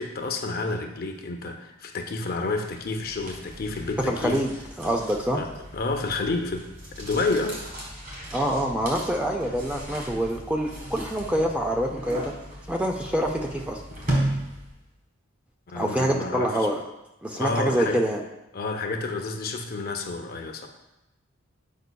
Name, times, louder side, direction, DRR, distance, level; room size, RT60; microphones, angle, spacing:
voice 1, 0.0-4.4 5.3-6.7 7.0-7.6 15.7-16.5 17.3-18.0 18.5-20.7, left 3 dB, 45° left, 4 dB, 0.5 m, -29 dB
sound 1, 2.5-14.9, right 1 dB, 40° right, 1.7 m, -36 dB
voice 2, 4.0-5.4 8.3-12.3 12.7-13.8 15.7-16.8 17.2-18.2, equal, 5° right, 1 dB, 0.4 m, -26 dB
8.0 x 5.1 x 2.2 m, 0.95 s
head